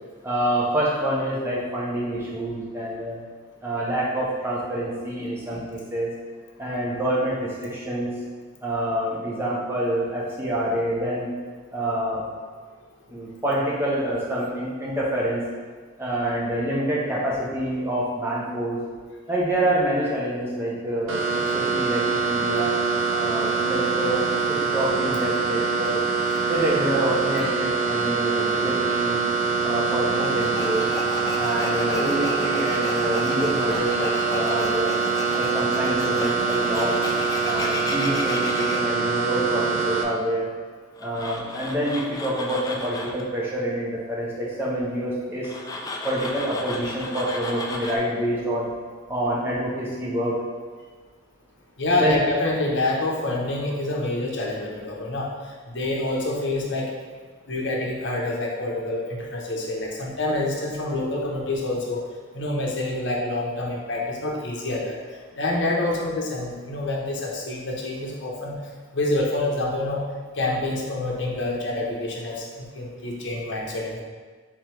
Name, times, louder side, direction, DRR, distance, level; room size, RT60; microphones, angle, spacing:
voice 1, 0.2-3.2 3.6-6.1 6.6-8.1 8.6-11.3 11.7-12.2 13.1-15.4 16.0-18.8 19.3-22.7 23.1-24.2 24.7-26.1 26.5-29.2 29.6-30.8 31.4-34.9 35.4-37.0 37.4-40.5 41.0-45.5 46.0-48.7 49.1-50.4 52.0-52.1, right 1 dB, 10° right, -6 dB, 0.9 m, -27 dB
sound 1, 21.1-40.0, right 4 dB, 80° right, 0.6 m, -24 dB
Tools, 30.2-38.8 41.0-43.2 45.4-48.0, left 2 dB, 20° left, 0.3 m, -34 dB
voice 2, 51.8-55.3 55.7-56.9 57.5-62.0 62.3-65.0 65.4-68.5 68.9-70.0 70.3-74.0, left 2 dB, 65° left, -2 dB, 0.8 m, -27 dB
3.7 x 3.1 x 4.6 m, 1.5 s
head